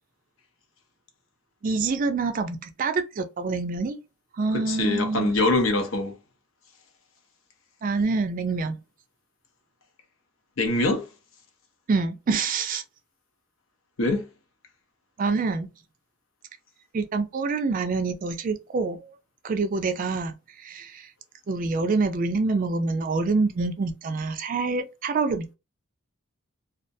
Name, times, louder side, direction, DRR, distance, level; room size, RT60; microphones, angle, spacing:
voice 1, 1.6-4.0 4.4-5.3 7.8-8.8 11.9-12.8 15.2-15.7 16.9-19.1 19.4-21.1 21.5-25.5, right 4 dB, 40° right, 0.3 m, -26 dB
voice 2, 4.5-6.2 10.6-11.1 14.0-14.3, left 2 dB, 60° left, 0.6 m, -24 dB
2.3 x 2.1 x 2.6 m
head